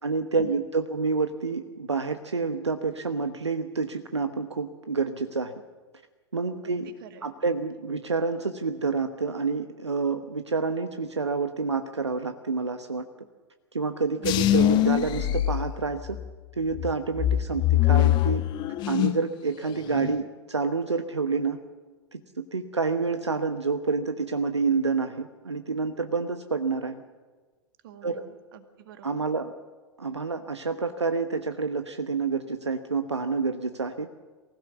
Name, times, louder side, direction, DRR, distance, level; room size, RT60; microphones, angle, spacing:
voice 1, 0.0-5.5 6.3-6.9 7.2-13.0 13.7-16.2 16.6-18.4 18.9-21.6 22.1-27.0 28.0-28.2 29.0-29.5 30.0-34.1, right 4 dB, 80° right, 8 dB, 1.1 m, -28 dB
voice 2, 6.6-7.3 14.2-14.5 27.8-29.3, right 9 dB, 55° right, 8 dB, 2.0 m, -48 dB
sound 1, 14.2-16.3 16.7-19.3 19.6-20.2, left 13 dB, 30° left, 1.0 m, -24 dB
24.0 x 16.0 x 7.1 m, 1.4 s
figure-of-eight pair, 100°, 14 cm